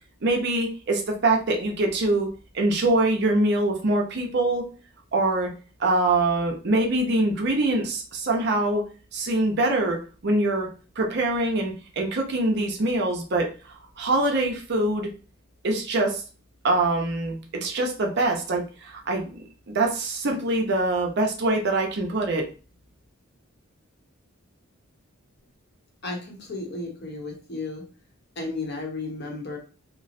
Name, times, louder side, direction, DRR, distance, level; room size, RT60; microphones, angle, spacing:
voice 1, 0.2-4.6 5.1-5.5 5.8-8.8 9.1-13.5 14.0-15.1 15.6-16.2 16.6-22.5, right 2 dB, 50° right, 1 dB, 0.6 m, -24 dB
voice 2, 26.0-27.9 28.4-29.6, left 3 dB, 50° left, 1 dB, 0.8 m, -33 dB
3.0 x 2.0 x 2.5 m, 0.36 s
head